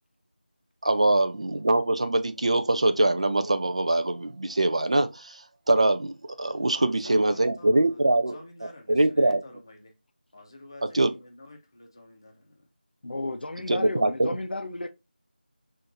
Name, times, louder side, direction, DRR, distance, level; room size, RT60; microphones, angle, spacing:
voice 1, 0.8-8.4 8.9-9.4 10.8-11.1 13.7-14.3, right 2 dB, 35° right, 0.3 m, -23 dB
voice 2, 6.7-9.9 10.3-12.7, left 1 dB, 25° left, 0.6 m, -49 dB
voice 3, 13.0-14.9, left 2 dB, 70° left, 0.5 m, -32 dB
5.5 x 2.5 x 2.6 m
figure-of-eight pair, 175°, 5 cm